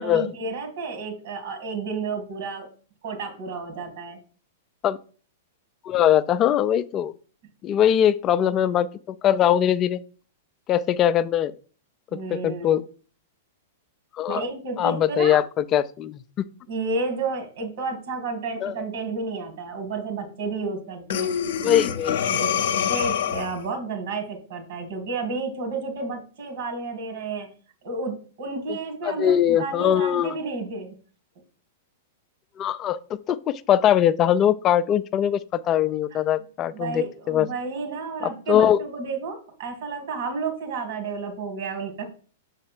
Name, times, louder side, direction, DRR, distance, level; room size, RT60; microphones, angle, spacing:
voice 1, 0.0-2.7 3.0-4.2 12.1-12.8 14.3-15.4 16.7-21.8 22.3-22.5 22.9-27.5 27.8-31.0 36.1-36.2 36.7-42.1, right 4 dB, 60° right, 2.3 m, -31 dB
voice 2, 5.8-7.1 7.6-8.9 9.2-10.0 10.7-11.5 12.3-12.8 14.2-14.4 14.8-16.4 18.6-18.7 21.6-22.2 29.0-30.3 32.6-33.0 33.3-37.5 38.5-38.8, left 10 dB, 30° left, 0.4 m, -21 dB
Breathing, 21.1-23.7, left 8 dB, 70° left, 0.7 m, -25 dB
6.5 x 4.1 x 4.5 m
hypercardioid pair, 115°, 0 cm